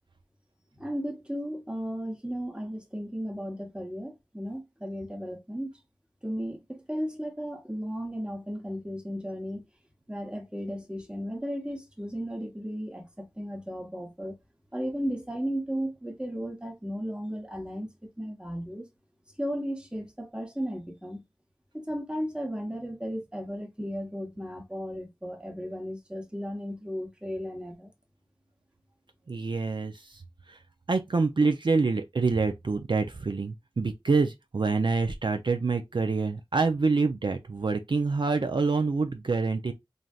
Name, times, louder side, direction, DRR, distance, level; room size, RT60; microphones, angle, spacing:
voice 1, 0.8-5.7 6.2-9.6 10.1-14.3 14.7-17.9 18.2-18.8 19.4-21.2 21.7-27.9, equal, 10° right, 0.9 m, -35 dB
voice 2, 29.3-30.2 30.5-30.6 30.9-39.7, right 4 dB, 60° right, 0.4 m, -26 dB
3.2 x 2.6 x 2.3 m
wide cardioid pair, 45°, 9 cm